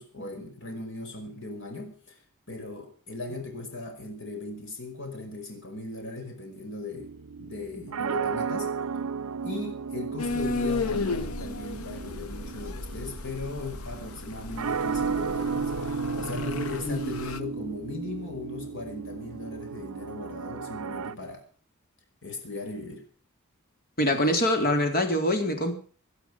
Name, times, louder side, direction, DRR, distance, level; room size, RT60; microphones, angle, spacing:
voice 1, 0.0-2.1 2.5-7.1 7.4-8.7 9.4-21.4 22.2-23.0, left 2 dB, 60° left, 4 dB, 5.3 m, -38 dB
sound 1, 7.0-21.1, right 5 dB, 90° right, 0.7 m, -34 dB
sound 2, 10.2-17.4, left 3 dB, 75° left, 1.1 m, -34 dB
voice 2, 16.8-17.1 24.0-25.8, left 1 dB, 45° left, 5 dB, 3.8 m, -24 dB
18.0 x 11.5 x 6.0 m, 0.42 s
head